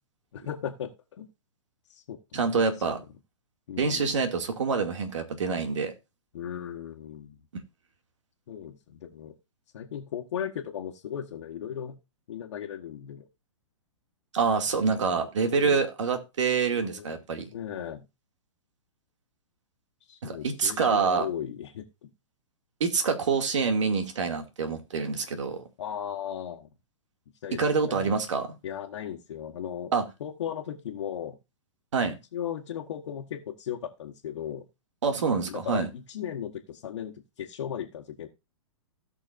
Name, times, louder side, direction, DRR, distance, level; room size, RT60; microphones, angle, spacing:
voice 1, 0.3-1.3 1.9-2.6 3.7-4.2 6.3-7.4 8.5-9.3 9.7-12.0 12.3-13.3 14.9-15.8 16.8-17.2 17.5-18.0 20.1-22.1 25.8-26.7 27.4-28.1 28.6-29.9 30.2-31.4 32.3-34.6 35.5-38.3, left 9 dB, 65° left, 1.5 m, -37 dB
voice 2, 2.3-3.0 3.8-5.9 14.3-17.5 20.2-21.3 22.8-25.6 27.6-28.5 29.9-30.0 31.9-32.2 35.0-35.9, right 5 dB, 70° right, 2.4 m, -26 dB
17.5 x 6.1 x 2.6 m
hypercardioid pair, 125°, 16 cm